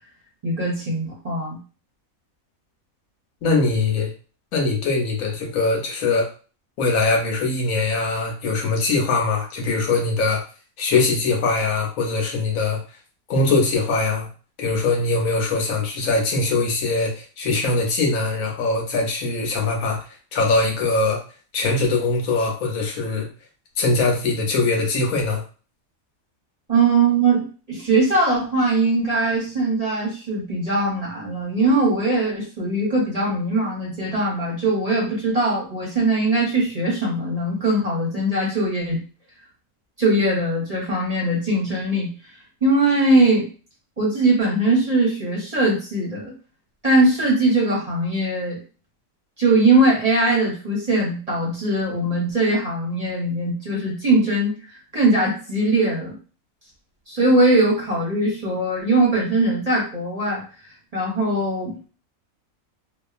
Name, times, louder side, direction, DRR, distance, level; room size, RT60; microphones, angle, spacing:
voice 1, 0.4-1.6 26.7-39.0 40.0-42.1 42.6-43.5 44.0-46.3 46.8-48.6 49.4-56.1 57.1-60.4 60.9-61.8, right 2 dB, 30° right, -5 dB, 0.8 m, -21 dB
voice 2, 3.4-4.1 4.5-6.3 6.8-10.4 10.8-12.8 13.3-14.3 14.6-20.0 20.3-21.2 21.5-23.3 23.8-25.4, left 3 dB, 80° left, 0 dB, 1.2 m, -22 dB
2.8 x 2.4 x 2.4 m, 0.36 s
omnidirectional pair, 1.4 m